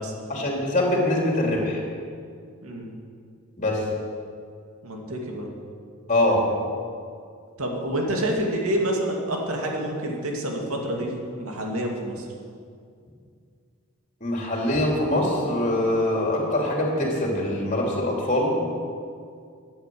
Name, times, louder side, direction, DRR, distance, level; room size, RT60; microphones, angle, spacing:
voice 1, 0.3-1.8 3.6-3.8 6.1-6.4 14.2-18.5, left 1 dB, 35° left, -1 dB, 3.0 m, -23 dB
voice 2, 2.6-2.9 4.8-5.5 7.6-12.3 14.7-14.8, right 1 dB, 80° right, 0 dB, 2.5 m, -28 dB
13.5 x 9.1 x 7.8 m, 2.3 s
head